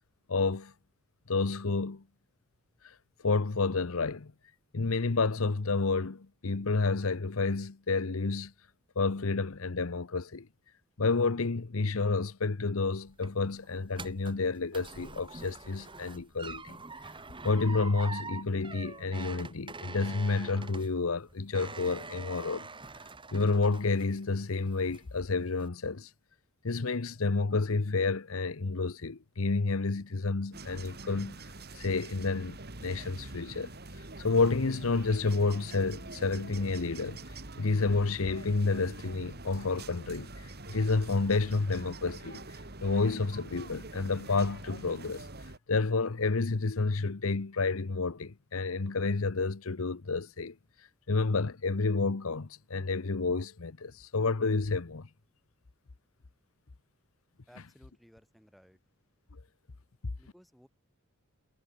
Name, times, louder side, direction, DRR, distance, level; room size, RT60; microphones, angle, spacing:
voice 1, 0.3-0.7 1.3-2.0 2.8-2.9 3.2-4.3 4.7-8.5 9.0-10.5 11.0-16.8 17.4-22.7 23.3-26.1 26.6-31.4 31.7-33.7 34.2-37.2 37.6-42.4 42.8-45.3 45.7-50.6 51.1-55.1 60.0-60.1, left 3 dB, 70° left, 0.9 m, -30 dB
sound 1, 12.8-24.3 24.7-25.2 25.6-25.7, right 4 dB, 25° right, 2.7 m, -45 dB
sound 2, 30.5-45.6, right 2 dB, 50° right, 3.4 m, -45 dB
voice 2, 57.5-58.8 60.2-60.7, equal, ahead, 6.0 m, -59 dB
head